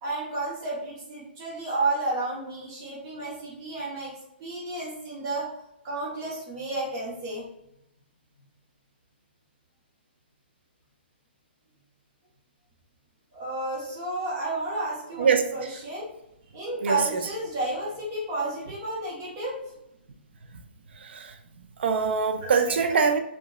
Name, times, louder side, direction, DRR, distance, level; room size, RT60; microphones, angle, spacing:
voice 1, 0.0-4.1 4.4-5.5 5.8-7.4 13.3-16.1 16.5-19.6 22.4-23.0, right 2 dB, 25° right, 0.8 m, -31 dB
voice 2, 21.0-21.3 21.8-23.2, right 5 dB, 75° right, 0.4 m, -23 dB
2.8 x 2.1 x 2.3 m
hypercardioid pair, 170°, 6 cm